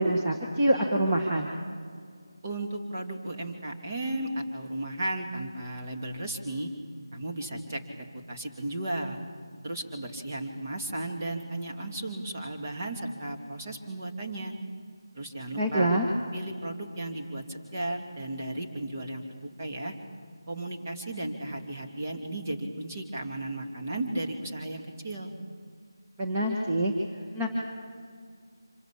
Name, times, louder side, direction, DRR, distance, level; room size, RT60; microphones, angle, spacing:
voice 1, 0.0-1.5 15.5-16.1 26.2-26.9 27.3-27.5, right 1 dB, 15° right, -3 dB, 1.5 m, -25 dB
voice 2, 2.4-6.7 7.1-9.2 9.6-14.5 15.1-15.9 16.3-19.9 20.5-25.3, right 1 dB, 35° right, 2 dB, 2.8 m, -35 dB
26.0 x 22.0 x 8.5 m, 2.1 s
figure-of-eight pair, 165°, 2 cm